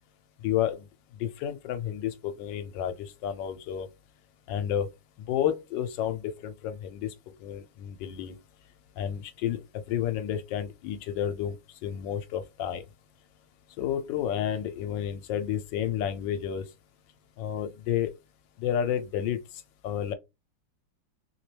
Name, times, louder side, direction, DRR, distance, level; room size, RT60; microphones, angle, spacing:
voice 1, 0.4-0.9 1.2-3.9 4.5-4.9 5.3-7.1 7.4-8.3 9.0-11.6 11.8-12.8 13.8-16.7 17.4-18.1 18.6-19.4 19.8-20.1, left 10 dB, 80° left, 1.2 m, -31 dB
3.1 x 2.9 x 3.2 m
omnidirectional pair, 2.0 m